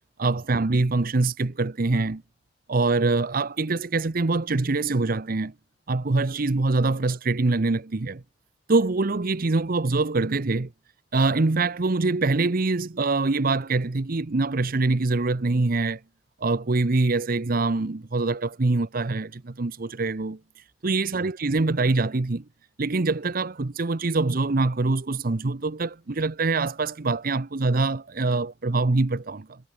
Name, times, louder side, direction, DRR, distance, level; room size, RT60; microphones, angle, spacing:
voice 1, 0.2-2.2 2.7-5.5 5.9-8.2 8.7-10.7 11.1-16.0 16.4-20.4 20.8-22.4 22.8-29.6, right 3 dB, 50° right, 0.8 m, -24 dB
head